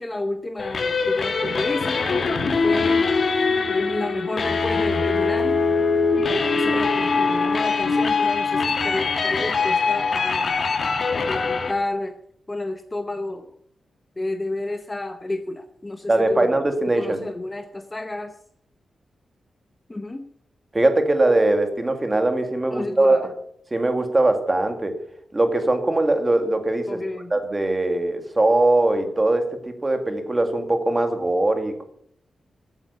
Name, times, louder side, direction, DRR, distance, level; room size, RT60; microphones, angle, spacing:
voice 1, 0.0-3.1 3.7-5.6 6.2-12.1 12.5-13.5 14.2-16.6 16.9-18.3 19.9-20.3 22.7-23.3 26.9-27.3, left 2 dB, 15° left, 8 dB, 0.8 m, -31 dB
sound 1, 0.6-11.7, left 4 dB, 45° left, 1.5 m, -22 dB
voice 2, 16.1-17.2 20.7-23.3 23.7-25.0 25.3-27.0 27.3-31.8, right 2 dB, 20° right, 6 dB, 2.0 m, -21 dB
15.0 x 9.1 x 7.0 m, 0.67 s
wide cardioid pair, 175°, 0 cm